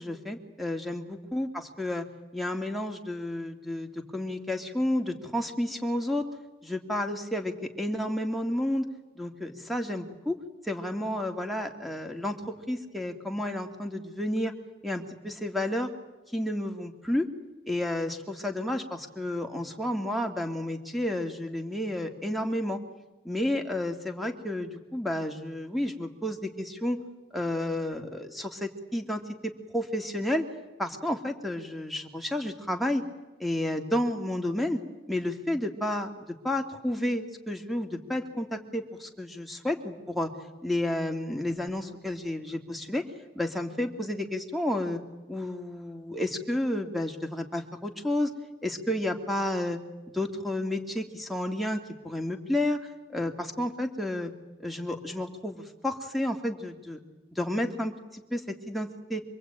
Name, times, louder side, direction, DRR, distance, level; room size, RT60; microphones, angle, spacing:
voice 1, 0.0-2.1 2.3-6.3 6.6-8.9 9.2-10.4 10.6-14.5 14.8-15.9 16.3-17.3 17.7-22.8 23.2-27.0 27.3-30.5 30.8-33.0 33.4-34.8 35.1-40.3 40.6-43.0 43.4-45.0 45.3-48.3 48.6-49.8 50.1-52.8 53.1-54.3 54.6-57.0 57.3-59.2, left 1 dB, ahead, 5 dB, 2.3 m, -31 dB
26.5 x 22.5 x 9.0 m, 1.1 s
head